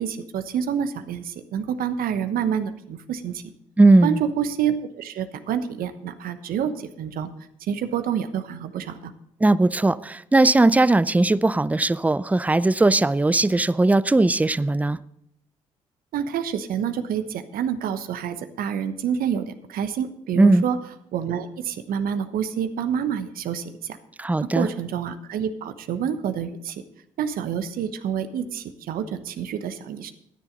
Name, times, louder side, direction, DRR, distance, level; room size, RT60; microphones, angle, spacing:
voice 1, 0.0-3.5 4.0-7.3 7.6-9.1 16.1-20.8 21.1-24.0 24.5-26.8 27.2-30.1, right 8 dB, 60° right, 11 dB, 1.0 m, -28 dB
voice 2, 3.8-4.2 9.4-15.0 20.4-20.6 24.2-24.7, right 2 dB, 10° right, 18 dB, 0.5 m, -18 dB
13.5 x 9.9 x 3.9 m, 0.77 s
hypercardioid pair, 45°, 17 cm